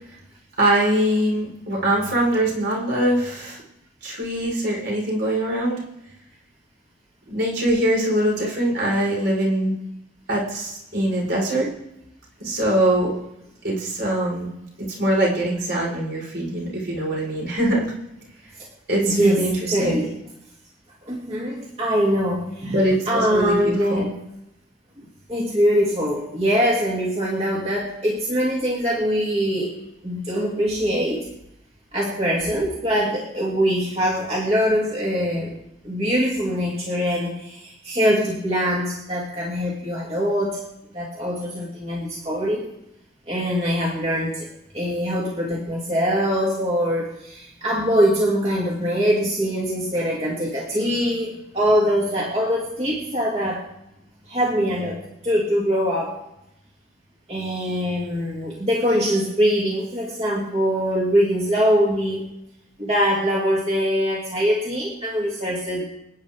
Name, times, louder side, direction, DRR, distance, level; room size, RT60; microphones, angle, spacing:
voice 1, 0.6-3.6 4.0-5.8 7.3-9.7 10.3-11.7 12.4-13.1 13.6-14.5 14.8-17.9 18.9-20.0 22.7-24.0, right 1 dB, 60° right, -3 dB, 4.7 m, -22 dB
voice 2, 19.0-20.2 21.0-24.1 25.3-29.8 30.0-31.3 31.9-35.5 35.8-40.6 40.9-42.7 43.3-44.5 44.7-53.6 54.3-55.0 55.2-56.2 57.3-62.2 62.8-65.8, equal, 30° right, -4 dB, 2.6 m, -23 dB
27.0 x 9.5 x 3.6 m, 0.84 s
head